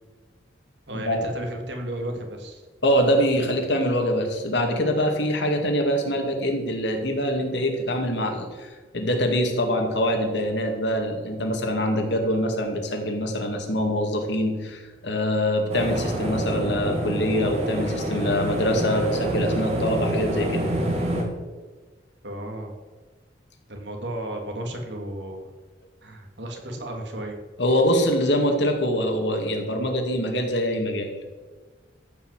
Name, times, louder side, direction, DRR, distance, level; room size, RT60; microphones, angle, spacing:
voice 1, 0.9-2.6 22.2-22.7 23.7-25.5 26.0-27.4, right 1 dB, 65° right, 2 dB, 2.4 m, -33 dB
voice 2, 2.8-20.7 27.6-31.1, equal, 65° left, 3 dB, 2.3 m, -24 dB
sound 1, 15.7-21.2, right 1 dB, 35° right, 2.1 m, -27 dB
14.0 x 5.7 x 8.1 m, 1.4 s
head